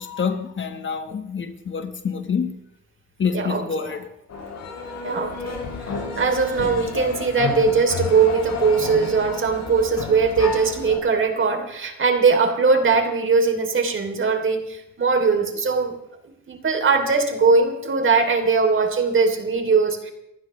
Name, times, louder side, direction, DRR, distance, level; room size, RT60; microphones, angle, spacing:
voice 1, 0.0-2.6 3.2-4.1, left 6 dB, 40° left, 1.4 m, -27 dB
voice 2, 3.3-4.0 4.4-4.5 4.7-15.9 16.5-20.1, right 4 dB, 40° right, 3.2 m, -20 dB
sound 1, 4.3-11.0, left 3 dB, 65° left, 7.7 m, -31 dB
28.5 x 15.0 x 3.2 m
cardioid pair, 90°, 30 cm